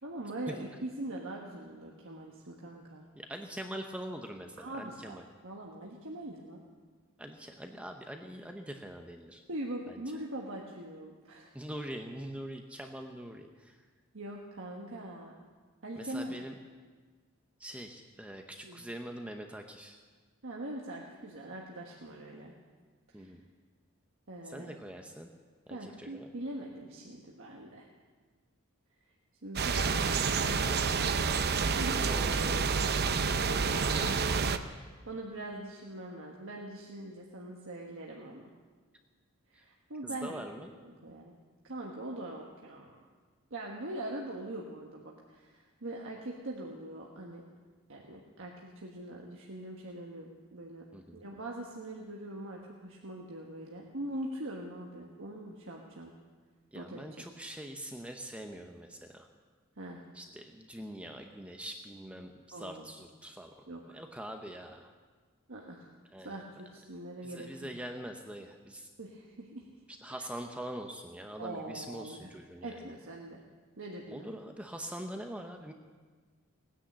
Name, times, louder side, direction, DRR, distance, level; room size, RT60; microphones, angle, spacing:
voice 1, 0.0-3.1 4.6-5.2 5.4-6.6 9.5-11.5 14.1-15.4 15.8-16.4 18.6-18.8 20.4-22.5 23.1-23.3 24.3-24.8 25.7-27.9 29.4-31.1 31.5-32.0 33.6-34.1 34.6-38.5 39.5-40.4 40.8-41.3 41.6-43.1 43.5-47.4 47.9-50.8 51.1-56.1 56.7-57.0 59.8-60.0 62.5-62.9 63.7-64.0 65.5-65.9 66.2-67.7 69.0-69.7 71.4-72.3 72.6-73.4 73.8-74.3, right 1 dB, 65° right, -1 dB, 1.5 m, -42 dB
voice 2, 3.2-5.2 7.2-9.4 9.9-10.0 11.5-13.8 16.0-16.5 17.6-20.0 23.1-23.4 24.4-25.3 25.7-26.3 32.1-33.1 33.7-34.2 39.5-39.6 40.0-40.7 50.9-51.2 56.7-59.3 60.1-63.7 63.9-64.9 66.1-66.4 67.2-68.9 69.9-72.9 74.1-75.7, right 1 dB, 5° right, 4 dB, 0.8 m, -43 dB
sound 1, 29.6-34.6, right 5 dB, 50° right, 0.7 m, -29 dB
19.0 x 10.0 x 7.5 m, 1.5 s
head